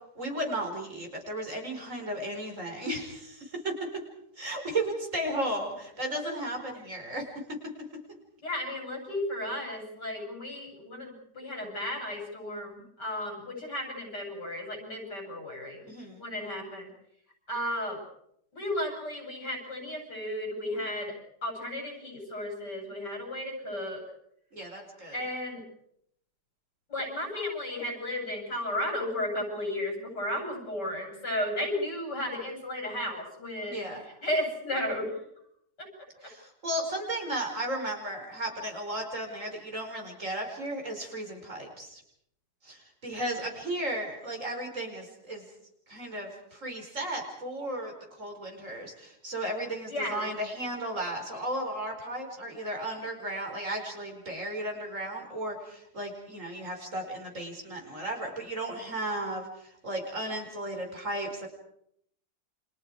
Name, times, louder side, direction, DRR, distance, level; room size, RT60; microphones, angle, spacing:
voice 1, 0.2-3.8 4.4-7.6 15.8-16.2 24.5-25.2 33.7-34.1 36.2-42.0 42.6-45.5 45.9-61.5, right 1 dB, 45° right, 2 dB, 5.3 m, -35 dB
voice 2, 8.4-15.8 16.2-16.9 17.5-18.0 18.5-21.2 21.4-24.0 25.1-25.6 26.9-33.9 34.2-35.1 35.8-35.9 49.9-50.3, left 1 dB, 85° left, 2 dB, 8.4 m, -34 dB
29.5 x 26.5 x 4.9 m, 0.73 s
omnidirectional pair, 1.8 m